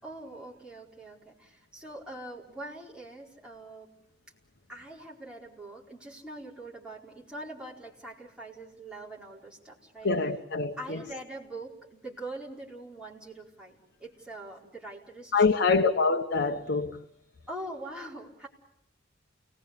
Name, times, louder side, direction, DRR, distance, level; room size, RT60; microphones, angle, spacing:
voice 1, 0.0-3.9 4.7-10.1 10.8-15.9 17.5-18.5, right 1 dB, 5° right, 4.5 m, -43 dB
voice 2, 10.0-11.0 15.3-17.0, left 4 dB, 65° left, 1.1 m, -25 dB
29.5 x 19.5 x 8.3 m
head